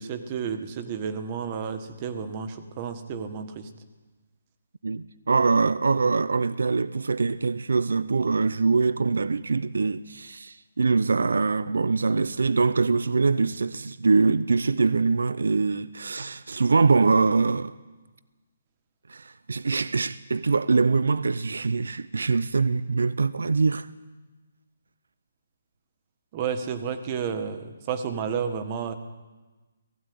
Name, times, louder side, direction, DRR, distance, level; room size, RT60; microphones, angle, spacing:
voice 1, 0.0-3.7 26.3-28.9, right 7 dB, 25° right, 1.6 m, -31 dB
voice 2, 4.8-17.7 19.1-23.9, right 4 dB, 90° right, 0.7 m, -23 dB
17.0 x 16.5 x 9.5 m
hypercardioid pair, 165°, 0 cm